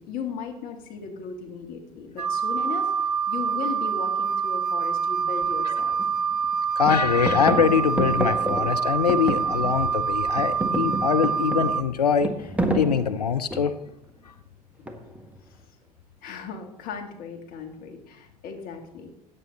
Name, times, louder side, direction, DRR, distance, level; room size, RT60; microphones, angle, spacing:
voice 1, 0.0-6.0 14.8-14.9 16.2-19.1, left 6 dB, 50° left, 3 dB, 2.2 m, -37 dB
Wind instrument woodwind instrument, 2.2-11.8, right 6 dB, 90° right, 0.4 m, -26 dB
sound 1, 5.4-5.5 6.0-6.5 6.8-10.0 10.3-13.9 14.9-15.3, right 1 dB, 5° right, 1.6 m, -29 dB
voice 2, 6.8-12.3 12.7-13.7, left 7 dB, 85° left, 9 dB, 0.5 m, -23 dB
14.0 x 9.1 x 4.1 m, 0.78 s
figure-of-eight pair, 65°, 20 cm